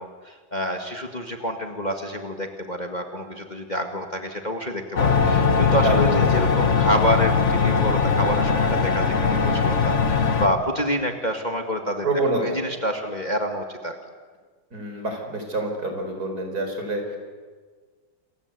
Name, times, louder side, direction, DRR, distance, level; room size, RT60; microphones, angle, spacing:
voice 1, 0.0-12.1 12.4-14.0, equal, 25° left, 4 dB, 2.0 m, -28 dB
sound 1, 5.0-10.5, left 5 dB, 40° left, 1.6 m, -20 dB
voice 2, 5.8-6.3 12.0-12.6 14.7-17.2, right 2 dB, 55° right, 4 dB, 5.2 m, -27 dB
28.5 x 23.0 x 8.4 m, 1.5 s
omnidirectional pair, 2.0 m